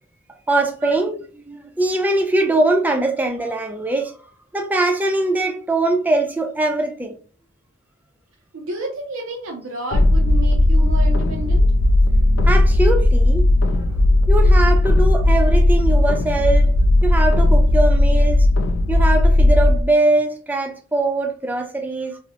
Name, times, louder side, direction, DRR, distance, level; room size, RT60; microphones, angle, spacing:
voice 1, 0.5-1.2 1.5-4.1 4.5-7.2 12.5-13.8 14.3-16.7 17.0-18.5 18.9-22.2, right 2 dB, 10° right, 0.3 m, -21 dB
voice 2, 8.5-11.7, right 2 dB, 80° right, 0.5 m, -31 dB
sound 1, 9.9-19.8, left 1 dB, 65° left, 0.3 m, -15 dB
2.5 x 2.0 x 2.7 m
head